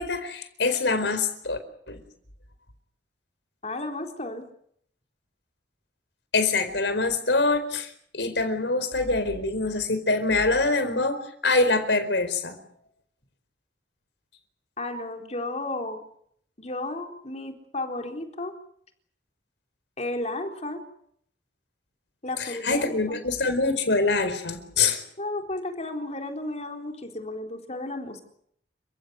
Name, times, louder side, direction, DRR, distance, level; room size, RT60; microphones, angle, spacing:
voice 1, 0.0-1.6 1.9-2.0 6.3-12.6 22.4-25.0, left 3 dB, 80° left, 10 dB, 4.4 m, -25 dB
voice 2, 3.6-4.5 14.8-16.0 16.6-18.5 20.0-20.8 22.2-23.2 25.2-28.2, left 2 dB, 40° left, 4 dB, 4.0 m, -33 dB
29.5 x 15.5 x 9.4 m, 0.69 s
head